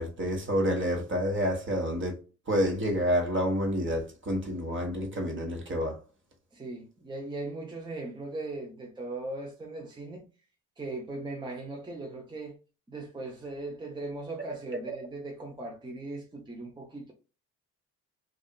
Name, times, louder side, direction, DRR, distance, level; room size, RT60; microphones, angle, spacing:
voice 1, 0.0-2.2 2.5-6.0, equal, 40° right, 1.1 m, -28 dB
voice 2, 6.5-10.2 10.8-12.5 12.9-17.1, right 2 dB, 15° right, 0.7 m, -39 dB
2.6 x 2.4 x 2.2 m
cardioid pair, 90°, 30 cm